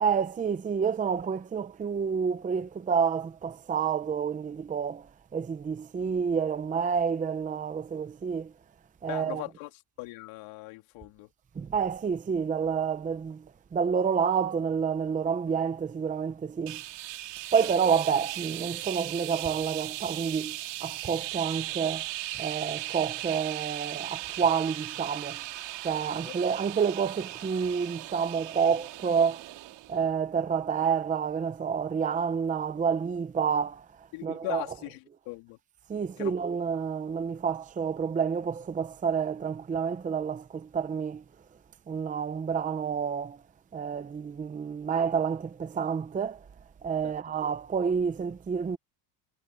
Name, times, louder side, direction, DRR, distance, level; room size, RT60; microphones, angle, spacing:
voice 1, 0.0-8.5 9.0-9.4 11.5-16.8 17.5-22.1 22.4-25.4 25.8-29.5 29.9-34.6 35.9-41.2 41.9-43.4 43.7-46.5 46.8-48.8, right 6 dB, 15° right, 0.7 m, -29 dB
voice 2, 9.1-9.7 10.0-11.3 17.6-17.7 26.1-26.3 34.1-35.6 36.2-36.4 47.0-47.1, left 21 dB, 80° left, 3.3 m, -39 dB
sound 1, 16.7-30.0, right 16 dB, 60° right, 2.7 m, -38 dB
cardioid pair, 145°, 48 cm